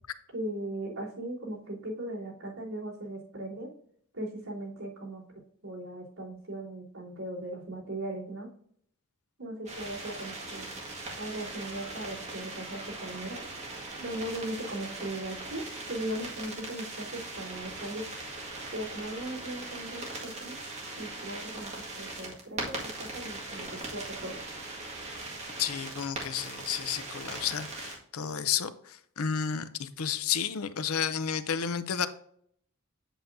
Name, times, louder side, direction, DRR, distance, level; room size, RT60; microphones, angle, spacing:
voice 1, 0.3-3.7 4.1-5.2 5.6-8.5 9.4-10.7 11.2-13.4 14.0-15.6 15.9-18.0 18.7-20.6 21.0-21.7 22.0-24.4, right 1 dB, 75° right, 3.3 m, -38 dB
sound 1, 9.7-27.9, right 2 dB, 30° right, 1.9 m, -40 dB
voice 2, 25.6-32.1, left 7 dB, 80° left, 0.6 m, -32 dB
8.0 x 7.9 x 2.7 m
head